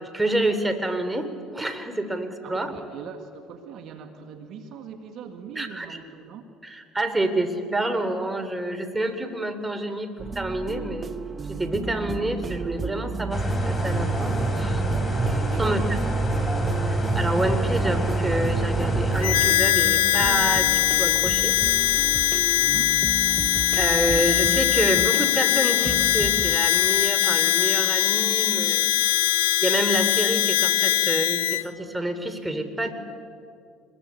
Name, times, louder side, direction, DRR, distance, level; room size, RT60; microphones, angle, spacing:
voice 1, 0.0-2.7 5.5-6.0 6.6-11.1 11.5-14.8 15.6-15.9 16.8-21.6 23.7-29.2 29.6-32.9, right 1 dB, 10° right, 8 dB, 3.4 m, -28 dB
voice 2, 2.4-6.5 15.5-16.1 22.6-23.0, right 6 dB, 60° right, 6 dB, 2.1 m, -40 dB
sound 1, 10.2-26.6, right 5 dB, 30° right, 0.9 m, -34 dB
sound 2, 13.3-19.3, right 2 dB, 15° left, 4.3 m, -25 dB
Harmonica, 19.2-31.6, left 14 dB, 90° left, 0.6 m, -21 dB
25.5 x 21.5 x 8.4 m, 2.3 s
hypercardioid pair, 70°, 0 cm